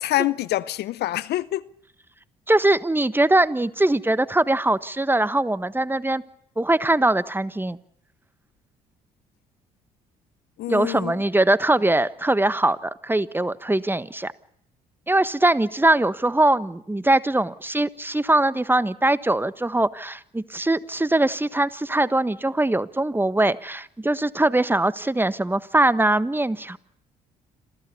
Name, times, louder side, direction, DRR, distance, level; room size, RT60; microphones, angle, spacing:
voice 1, 0.0-1.7 10.6-11.2, left 15 dB, 65° left, 0.8 m, -26 dB
voice 2, 2.5-6.2 6.6-7.8 10.7-14.3 15.1-26.8, right 2 dB, 10° right, 1.3 m, -21 dB
27.0 x 15.5 x 8.4 m
hypercardioid pair, 55°, 18 cm